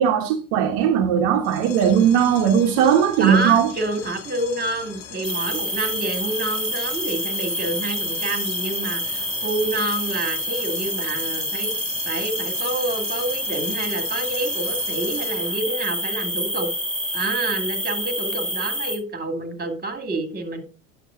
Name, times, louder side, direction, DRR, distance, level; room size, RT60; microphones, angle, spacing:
voice 1, 0.0-3.7, right 8 dB, 65° right, 1.3 m, -18 dB
sound 1, 1.4-15.6, left 7 dB, 60° left, 2.3 m, -40 dB
voice 2, 3.2-11.7 12.1-16.7 17.1-20.6, right 2 dB, 25° right, 2.7 m, -28 dB
sound 2, 5.2-19.0, equal, ahead, 3.3 m, -27 dB
10.0 x 7.1 x 3.8 m
hypercardioid pair, 80°, 40 cm